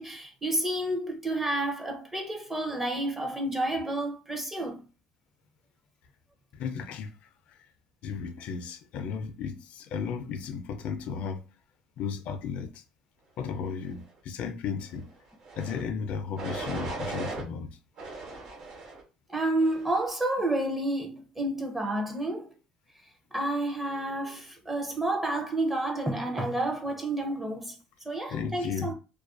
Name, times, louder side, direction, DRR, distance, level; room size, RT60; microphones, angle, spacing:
voice 1, 0.0-4.8 19.3-22.5 23.3-27.8 28.0-28.9, right 1 dB, 10° right, 0.5 m, -30 dB
voice 2, 6.5-7.2 8.0-11.4 12.0-12.8 13.4-15.1 15.6-17.7 28.3-28.9, left 6 dB, 65° left, 0.4 m, -34 dB
sound 1, 15.4-15.8 16.4-17.4 18.0-19.0 19.6-20.0, right 3 dB, 65° right, 1.1 m, -38 dB
2.3 x 2.2 x 2.4 m
cardioid pair, 115°, 2 cm